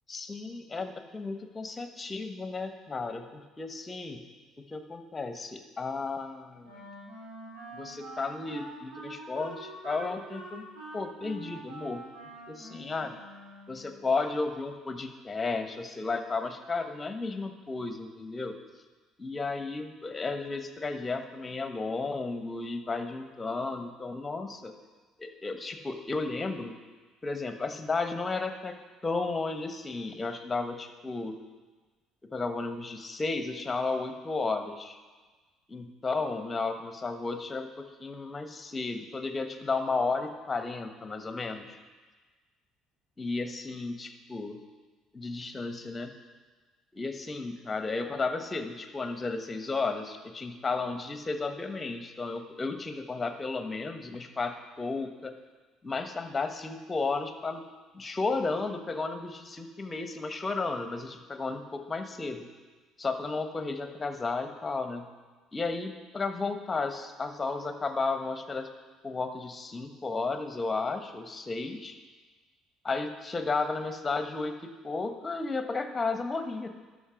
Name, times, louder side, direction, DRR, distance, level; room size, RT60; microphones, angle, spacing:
voice 1, 0.1-4.2 4.6-6.8 7.7-10.6 10.9-12.0 12.5-13.1 13.7-18.5 19.2-24.7 25.2-26.7 27.2-28.7 29.0-31.4 32.3-35.0 35.7-41.8 43.2-44.6 45.1-46.1 46.9-55.3 55.8-57.6 57.9-62.5 63.0-65.1 65.5-68.7 69.0-72.0 72.8-76.7, left 3 dB, 25° left, 7 dB, 1.1 m, -33 dB
Wind instrument woodwind instrument, 6.6-14.0, right 2 dB, 75° right, 3.2 m, -45 dB
12.5 x 5.4 x 5.0 m, 1.3 s
hypercardioid pair, 55°, 0 cm